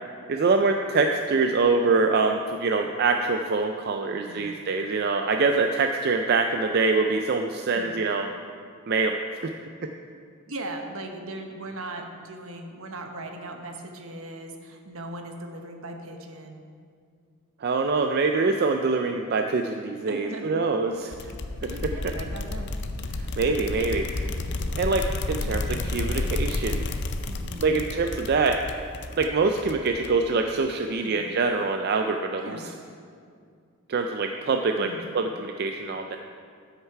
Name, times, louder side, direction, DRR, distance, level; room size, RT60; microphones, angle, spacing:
voice 1, 0.3-8.3 8.9-9.5 9.8-9.9 17.6-21.3 21.6-22.1 23.4-24.3 24.8-26.9 27.6-28.6 29.2-32.7 33.9-36.2, right 4 dB, 50° right, 5 dB, 0.4 m, -25 dB
voice 2, 4.1-4.7 7.7-7.9 10.5-16.6 20.1-20.6 21.7-22.7 27.2-27.8 31.0-31.2 32.4-32.7 34.8-35.1, right 1 dB, 70° right, 4 dB, 1.1 m, -38 dB
sound 1, 21.1-30.3, left 2 dB, 50° left, 0.5 m, -31 dB
12.5 x 6.6 x 4.6 m, 2.3 s
head